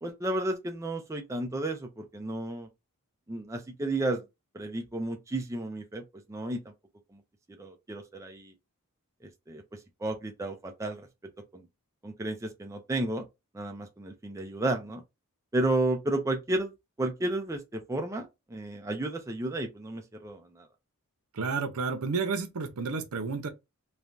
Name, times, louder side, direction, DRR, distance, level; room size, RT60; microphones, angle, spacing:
voice 1, 0.0-2.7 3.3-4.2 4.5-6.6 7.6-8.5 9.2-9.6 10.0-11.1 11.5-11.7 12.0-13.2 13.5-15.0 15.5-16.7 17.0-20.7, right 2 dB, 15° right, 0.4 m, -32 dB
voice 2, 21.3-23.5, right 4 dB, 75° right, 0.6 m, -31 dB
3.2 x 2.2 x 2.5 m
head